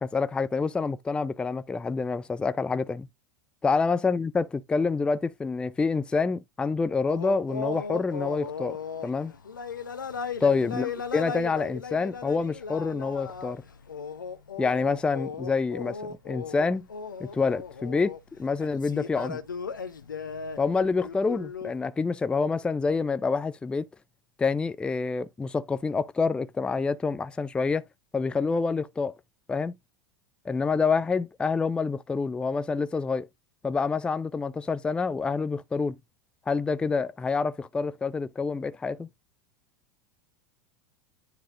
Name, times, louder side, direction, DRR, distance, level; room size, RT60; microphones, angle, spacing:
voice 1, 0.0-3.1 3.6-9.3 10.4-13.6 14.6-16.0 16.3-16.9 17.2-19.4 20.6-23.9 24.4-27.8 28.1-29.2 29.5-29.7 30.5-33.3 33.6-36.0 36.5-39.1, left 4 dB, 10° left, 0.4 m, -27 dB
sound 1, 7.1-21.7, left 6 dB, 75° left, 0.9 m, -37 dB
10.0 x 4.0 x 2.6 m
figure-of-eight pair, 85°, 11 cm